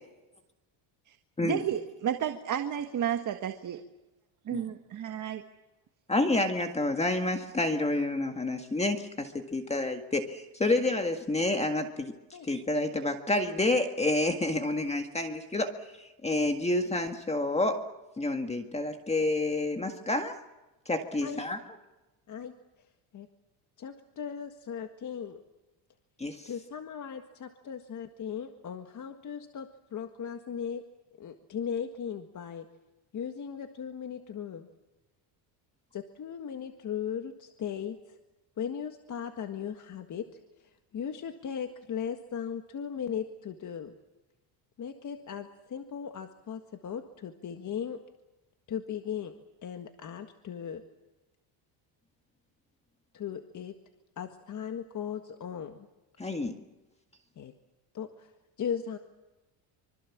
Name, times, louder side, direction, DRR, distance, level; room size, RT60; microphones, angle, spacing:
voice 1, 1.4-3.8 4.5-5.4, right 9 dB, 40° right, 6 dB, 1.6 m, -32 dB
voice 2, 6.1-12.1 12.4-15.7 16.0-17.8 18.2-20.3 20.9-21.6 26.2-26.5 56.2-56.5, left 2 dB, 15° left, 5 dB, 1.8 m, -29 dB
voice 3, 22.3-22.9 23.1-23.3 23.8-25.4 26.5-30.8 31.2-32.7 33.1-34.7 35.9-38.2 38.6-40.3 40.6-43.9 44.8-48.0 48.7-49.3 49.6-50.8 53.1-53.8 54.2-55.9 57.4-57.5 57.9-58.3 58.6-59.0, left 8 dB, 40° left, 6 dB, 1.8 m, -37 dB
25.5 x 25.0 x 7.4 m, 1.0 s
cardioid pair, 135°, 47 cm